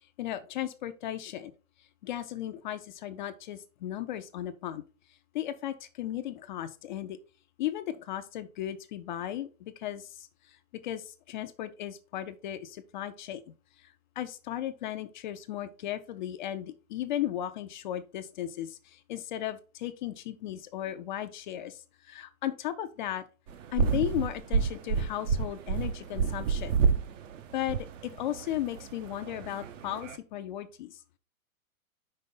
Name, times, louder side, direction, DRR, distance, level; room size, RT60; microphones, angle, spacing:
voice 1, 0.2-1.5 2.0-4.8 5.3-7.2 7.6-10.6 10.8-13.4 13.8-23.2 23.7-26.7 27.5-31.0, left 12 dB, 35° left, 10 dB, 0.4 m, -36 dB
sound 1, 23.5-30.2, right 6 dB, 60° right, 0.9 m, -30 dB
5.4 x 5.2 x 3.7 m, 0.34 s
hypercardioid pair, 130°, 43 cm